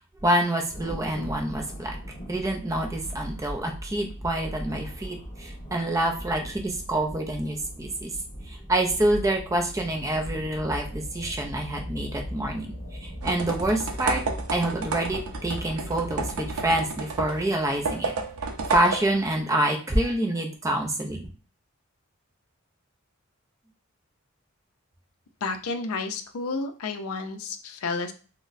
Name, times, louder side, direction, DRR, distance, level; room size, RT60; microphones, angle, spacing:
voice 1, 0.2-2.0 2.3-8.1 8.5-12.7 13.0-14.2 14.5-18.1 18.7-21.3, right 1 dB, 15° right, 2 dB, 0.4 m, -27 dB
Thunder, 0.7-16.7, equal, 25° left, 1.2 m, -40 dB
sound 1, 10.5-17.0, equal, 45° left, 0.8 m, -40 dB
sound 2, 13.2-19.4, right 4 dB, 85° right, 0.5 m, -32 dB
voice 2, 25.4-28.1, left 4 dB, 85° left, 7 dB, 0.5 m, -31 dB
3.8 x 2.1 x 2.5 m, 0.37 s
head